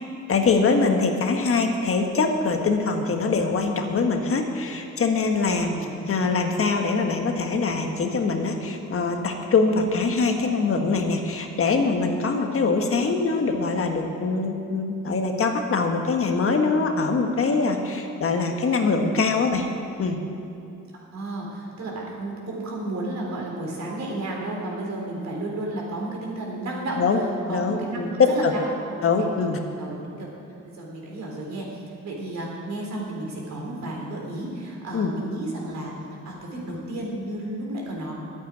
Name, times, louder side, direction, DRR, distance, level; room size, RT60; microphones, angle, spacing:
voice 1, 0.3-5.7 6.1-19.7 20.0-20.2 27.0-27.2 27.5-28.5 29.0-29.6 34.9-35.1, left 4 dB, 45° left, 4 dB, 1.5 m, -23 dB
voice 2, 5.6-6.0 21.1-27.0 27.5-28.6 29.1-29.3 29.8-30.3 30.7-35.9 36.3-38.1, right 1 dB, 65° right, -2 dB, 3.9 m, -32 dB
11.0 x 8.8 x 9.4 m, 2.6 s
cardioid pair, 90°, 30 cm